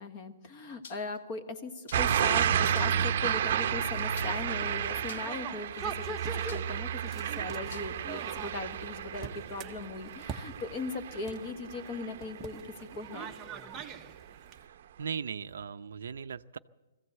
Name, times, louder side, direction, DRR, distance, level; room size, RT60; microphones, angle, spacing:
voice 1, 0.0-13.3, left 3 dB, 25° left, 8 dB, 1.4 m, -39 dB
sound 1, 0.8-1.2 1.9-2.2 2.7-3.1 4.1-4.6 5.1-5.4 6.5-6.8 7.7-7.9, left 5 dB, 55° left, 1.4 m, -49 dB
sound 2, 1.9-12.8 13.2-13.6, right 9 dB, 45° right, 0.8 m, -32 dB
sound 3, 3.8-14.6, right 5 dB, 10° right, 0.8 m, -44 dB
voice 2, 14.5-16.6, right 7 dB, 80° right, 13 dB, 0.6 m, -39 dB
21.5 x 15.5 x 8.0 m, 1.2 s
hypercardioid pair, 175°, 0 cm